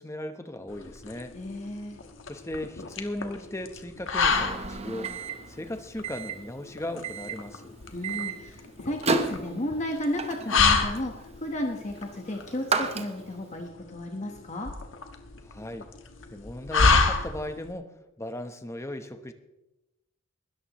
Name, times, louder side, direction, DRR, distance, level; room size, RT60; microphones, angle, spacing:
voice 1, 0.0-1.4 2.3-5.1 5.5-7.8 15.4-15.9 16.3-19.3, left 1 dB, 15° left, 8 dB, 0.9 m, -37 dB
sound 1, 0.7-17.7, left 4 dB, 75° left, 1.4 m, -29 dB
voice 2, 1.3-2.0 7.9-14.7, left 1 dB, 35° left, 2 dB, 1.2 m, -33 dB
Microwave oven, 4.3-13.5, right 4 dB, 30° right, 0.9 m, -34 dB
21.0 x 13.5 x 3.1 m, 0.98 s
head